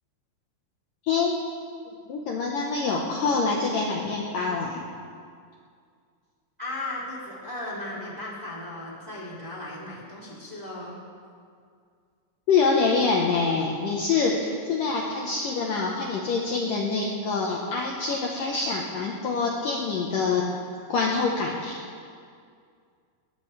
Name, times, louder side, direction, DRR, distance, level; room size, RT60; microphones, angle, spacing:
voice 1, 1.1-1.4 2.1-4.8 12.5-20.5 20.9-21.7, left 4 dB, 85° left, -2 dB, 1.9 m, -25 dB
voice 2, 6.6-11.0, left 1 dB, 10° right, -6 dB, 2.0 m, -36 dB
20.5 x 18.5 x 3.4 m, 2.2 s
omnidirectional pair, 5.7 m